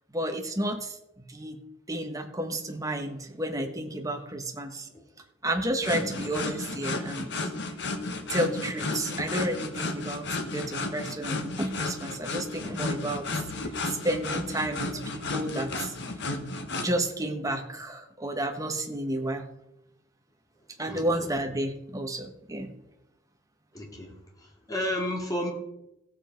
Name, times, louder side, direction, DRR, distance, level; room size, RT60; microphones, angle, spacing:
voice 1, 0.1-1.6 1.9-4.9 5.4-7.3 8.3-13.3 13.8-16.0 16.8-19.4 20.8-22.7, right 1 dB, 15° right, 4 dB, 1.3 m, -31 dB
sound 1, 5.8-16.9, left 2 dB, 60° left, 1.4 m, -33 dB
voice 2, 20.9-21.3 23.7-25.5, left 1 dB, 20° left, 0 dB, 2.4 m, -34 dB
15.5 x 7.7 x 5.2 m, 0.88 s
head